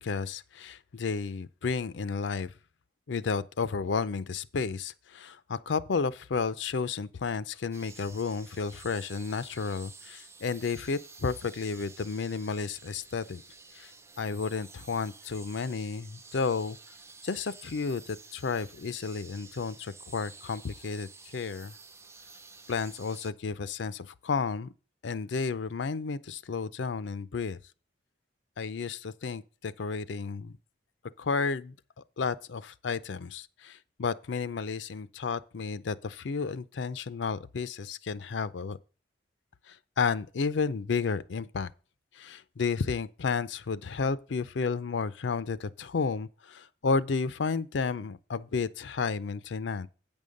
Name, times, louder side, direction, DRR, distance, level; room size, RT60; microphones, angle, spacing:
voice 1, 0.0-2.5 3.1-13.4 13.7-13.9 14.2-16.8 17.2-21.1 21.3-21.7 22.7-24.7 25.0-27.6 28.6-30.6 31.2-31.7 32.2-38.8 39.7-41.7 42.1-49.9, left 5 dB, 80° left, 0.5 m, -32 dB
sound 1, 7.7-23.3, right 4 dB, 15° right, 0.4 m, -51 dB
9.0 x 5.4 x 6.4 m
head